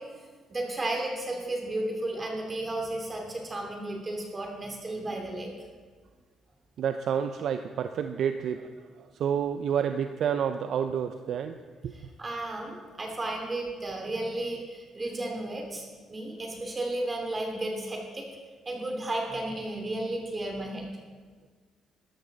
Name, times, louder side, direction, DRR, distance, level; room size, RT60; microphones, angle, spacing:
voice 1, 0.5-5.5 12.2-18.2 18.7-20.9, right 1 dB, 30° right, 0 dB, 2.5 m, -33 dB
voice 2, 6.8-8.7 9.2-11.6 11.8-11.9, right 8 dB, 70° right, 8 dB, 0.5 m, -29 dB
13.5 x 12.0 x 3.9 m, 1.5 s
cardioid pair, 90°, 0 cm